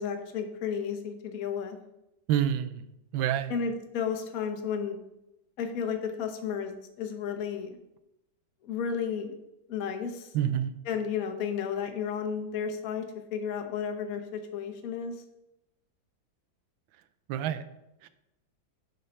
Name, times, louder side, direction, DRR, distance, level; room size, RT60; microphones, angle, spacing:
voice 1, 0.0-1.8 3.5-5.0 5.6-7.8 8.6-9.3 9.7-10.3 10.8-13.1 13.3-15.1, left 7 dB, 55° left, 5 dB, 1.1 m, -33 dB
voice 2, 2.3-2.8 3.1-3.5 10.3-10.7 17.3-17.6 18.0-18.1, right 10 dB, 80° right, 12 dB, 1.3 m, -27 dB
6.4 x 4.4 x 5.4 m, 0.88 s
omnidirectional pair, 2.2 m